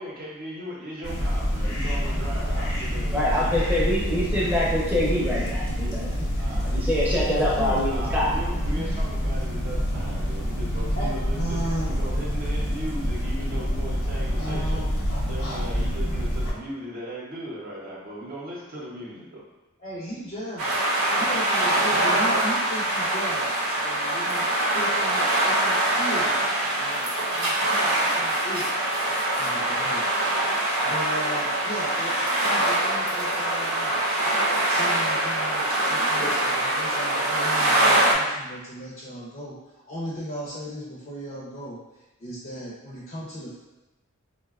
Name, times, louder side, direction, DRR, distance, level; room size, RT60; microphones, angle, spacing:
voice 1, 0.0-3.9 6.4-6.7 7.9-14.8 15.3-19.4, equal, 45° right, -5 dB, 0.7 m, -38 dB
sound 1, 1.0-16.5, equal, 75° left, 0.8 m, -27 dB
voice 2, 3.1-6.1 6.7-8.3 8.7-9.0, left 1 dB, 10° right, -5 dB, 0.6 m, -25 dB
voice 3, 7.3-7.8 11.0-11.1 19.8-20.8 21.2-28.8 29.3-30.1 30.8-34.1 34.7-39.6 39.9-43.6, equal, 40° left, -7 dB, 0.6 m, -37 dB
sound 2, 20.6-38.1, right 1 dB, 85° right, 0.8 m, -24 dB
3.7 x 2.2 x 2.3 m, 1.1 s
head